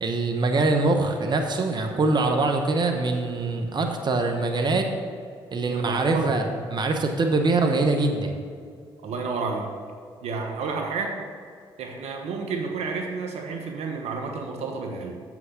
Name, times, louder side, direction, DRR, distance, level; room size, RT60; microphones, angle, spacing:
voice 1, 0.0-4.9 5.5-8.4, right 3 dB, 40° right, 4 dB, 1.0 m, -23 dB
voice 2, 5.7-6.4 9.0-9.7 10.2-11.2 11.8-15.2, right 4 dB, 70° right, 3 dB, 1.1 m, -30 dB
7.7 x 6.0 x 5.8 m, 2.2 s
hypercardioid pair, 55°, 11 cm